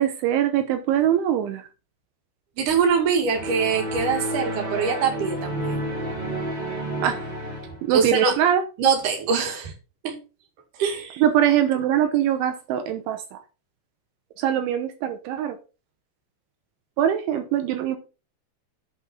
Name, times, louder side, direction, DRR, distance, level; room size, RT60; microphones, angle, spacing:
voice 1, 0.0-1.6 7.0-7.2 7.8-8.6 11.2-13.2 14.4-15.6 17.0-18.0, right 10 dB, 80° right, 7 dB, 3.3 m, -22 dB
voice 2, 2.6-5.8 7.9-8.4 8.8-9.7 10.0-10.2 10.8-11.2, right 6 dB, 50° right, 3 dB, 3.2 m, -23 dB
Success Resolution Video Game Sound Effect Strings, 3.3-7.9, right 1 dB, 25° right, 1.4 m, -30 dB
8.2 x 5.5 x 6.0 m, 0.32 s
omnidirectional pair, 5.5 m